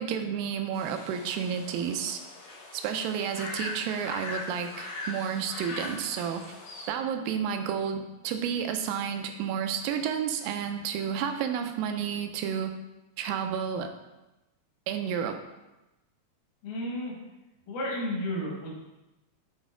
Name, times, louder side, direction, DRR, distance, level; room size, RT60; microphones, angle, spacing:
voice 1, 0.0-2.2 2.7-6.4 6.9-12.7 13.2-13.9 14.9-15.4, right 7 dB, 80° right, 6 dB, 2.1 m, -31 dB
sound 1, 0.7-6.9, left 2 dB, 90° left, 1.2 m, -41 dB
voice 2, 16.6-17.1 17.7-18.7, left 1 dB, 75° left, -3 dB, 3.5 m, -32 dB
9.1 x 4.0 x 3.7 m, 1.0 s
omnidirectional pair, 4.4 m